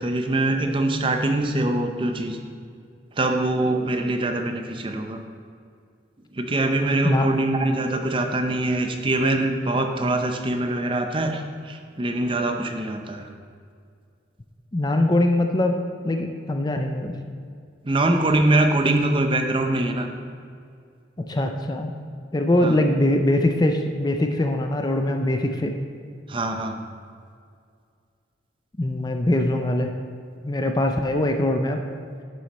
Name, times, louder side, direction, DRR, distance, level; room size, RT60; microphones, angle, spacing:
voice 1, 0.0-2.4 3.2-5.2 6.3-13.3 17.8-20.1 22.6-22.8 26.3-26.8, right 2 dB, 25° right, 5 dB, 0.6 m, -23 dB
voice 2, 14.7-15.8 16.0-17.2 21.2-21.9 22.3-25.8 28.8-29.9 30.4-31.8, left 1 dB, 20° left, 5 dB, 0.5 m, -22 dB
11.0 x 6.4 x 4.2 m, 2.3 s
head